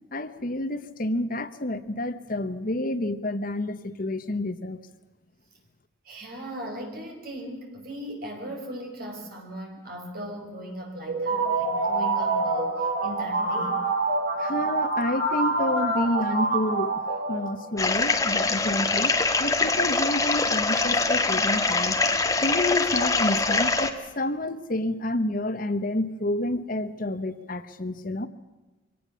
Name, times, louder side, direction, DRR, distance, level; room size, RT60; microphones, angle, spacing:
voice 1, 0.1-4.8 14.4-17.0 17.3-19.1 19.4-22.0 22.4-28.3, left 1 dB, 45° left, 11 dB, 1.1 m, -29 dB
voice 2, 6.0-13.8, equal, 50° right, 2 dB, 5.7 m, -38 dB
sound 1, 11.1-17.9, right 3 dB, 85° right, 5.9 m, -26 dB
sound 2, 17.8-23.9, left 3 dB, 20° left, 1.5 m, -24 dB
24.0 x 18.5 x 7.0 m, 1.2 s
head